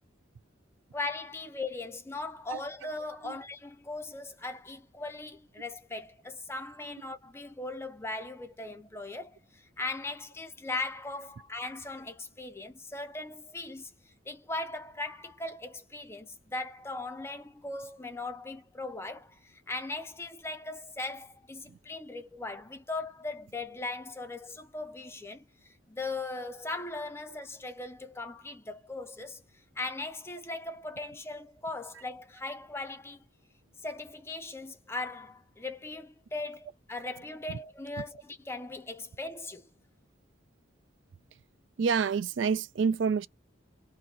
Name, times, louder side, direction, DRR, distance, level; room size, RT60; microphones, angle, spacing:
voice 1, 0.9-33.2 33.8-39.7, left 2 dB, 15° left, 0.5 m, -39 dB
voice 2, 41.8-43.3, right 6 dB, 65° right, 0.4 m, -28 dB
3.0 x 2.6 x 3.8 m
head